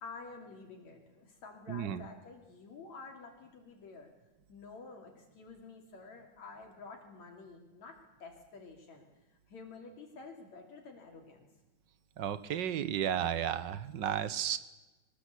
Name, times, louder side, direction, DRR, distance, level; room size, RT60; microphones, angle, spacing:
voice 1, 0.0-4.1 4.5-9.1 9.5-11.5, left 4 dB, 65° left, 1 dB, 4.1 m, -50 dB
voice 2, 1.7-2.1 12.2-14.6, right 9 dB, 70° right, 13 dB, 1.0 m, -33 dB
24.0 x 20.0 x 8.4 m, 1.1 s
omnidirectional pair, 3.4 m